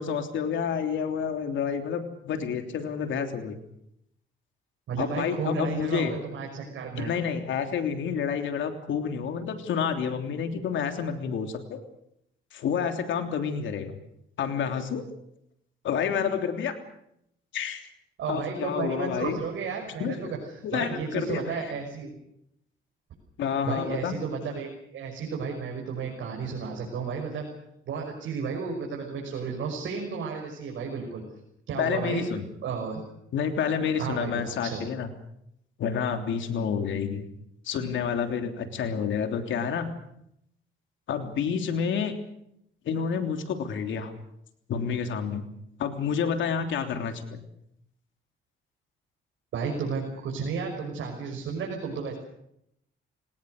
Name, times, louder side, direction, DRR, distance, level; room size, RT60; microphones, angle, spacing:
voice 1, 0.0-3.6 5.0-6.2 7.0-11.8 12.5-13.9 14.4-15.0 15.8-16.7 17.5-17.8 18.3-19.4 20.0-20.3 20.6-21.7 23.4-24.2 31.8-32.4 33.3-35.1 35.8-37.2 37.6-39.9 41.1-42.1 42.8-44.1 44.7-45.4 45.8-47.4, left 7 dB, 75° left, 6 dB, 3.3 m, -29 dB
voice 2, 4.9-7.1 18.2-20.4 20.7-22.1 23.7-27.4 27.9-31.2 31.7-32.3 32.6-33.0 34.0-34.8 49.5-52.2, right 5 dB, 75° right, 0 dB, 6.0 m, -33 dB
30.0 x 18.5 x 6.6 m, 0.76 s
cardioid pair, 90°, 20 cm